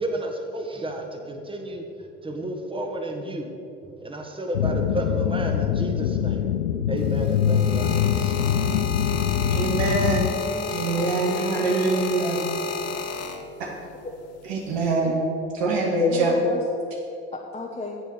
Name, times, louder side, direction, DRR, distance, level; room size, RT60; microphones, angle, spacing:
voice 1, 0.0-1.9 2.2-3.5 4.0-6.4 6.9-8.4, right 1 dB, 15° right, 1.7 m, -31 dB
sound 1, 4.5-10.3, left 9 dB, 85° left, 0.5 m, -23 dB
sound 2, 7.0-13.8 14.6-15.0, left 4 dB, 45° left, 1.1 m, -32 dB
voice 2, 9.5-10.4 10.7-12.4 13.6-13.7 14.4-15.3 15.5-16.4, right 2 dB, 70° right, 2.0 m, -24 dB
voice 3, 10.3-10.9 11.4-12.3 15.0-15.1 16.1-16.6 17.3-18.0, left 2 dB, 20° left, 1.1 m, -35 dB
9.3 x 8.3 x 6.5 m
figure-of-eight pair, 60°, 33 cm